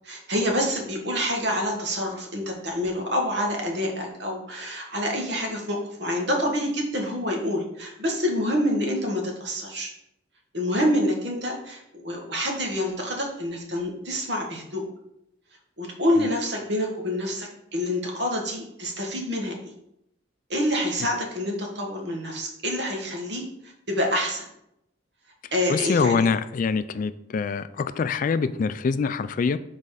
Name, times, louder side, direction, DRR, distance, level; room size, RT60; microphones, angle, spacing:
voice 1, 0.0-9.9 10.5-14.8 15.8-19.6 20.5-24.4 25.5-26.2, equal, 60° right, 1 dB, 1.6 m, -27 dB
voice 2, 25.7-29.6, left 5 dB, 45° left, 13 dB, 0.3 m, -24 dB
6.8 x 4.1 x 4.9 m, 0.80 s
head